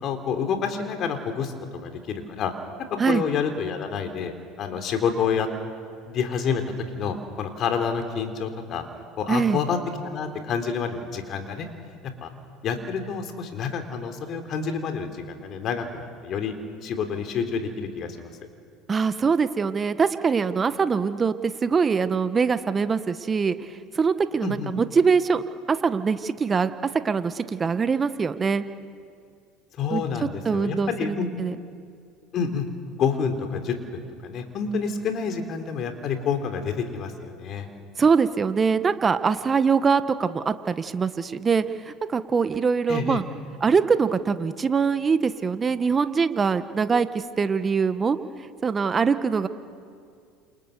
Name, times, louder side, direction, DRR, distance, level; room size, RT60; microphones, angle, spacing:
voice 1, 0.0-1.5 1.8-2.5 3.1-5.5 6.1-6.6 6.9-8.9 9.2-9.8 10.0-11.7 12.2-12.3 12.6-16.5 16.8-18.3 24.4-24.7 29.8-31.6 32.3-32.7 33.0-37.7 42.9-43.2, left 6 dB, 50° left, 6 dB, 3.7 m, -28 dB
voice 2, 9.3-9.6 18.9-23.6 23.9-25.4 25.7-28.6 29.9-30.0 30.4-31.5 38.0-43.2 43.6-48.2 48.6-49.5, right 5 dB, 30° right, 11 dB, 1.4 m, -23 dB
30.0 x 28.5 x 6.9 m, 2.3 s
hypercardioid pair, 75°, 0 cm